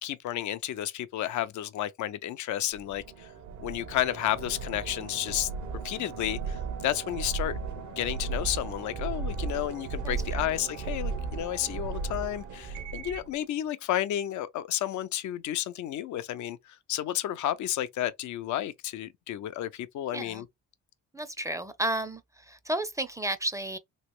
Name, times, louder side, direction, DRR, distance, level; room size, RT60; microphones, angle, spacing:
voice 1, 0.0-3.3 3.6-7.6 7.9-20.5, left 12 dB, 70° left, 0.5 m, -32 dB
sound 1, 2.7-13.3, right 4 dB, 70° right, 1.0 m, -36 dB
voice 2, 10.0-10.5 20.1-20.4 21.1-23.8, right 1 dB, 10° right, 0.5 m, -33 dB
3.1 x 2.9 x 3.0 m
cardioid pair, 90°, 30 cm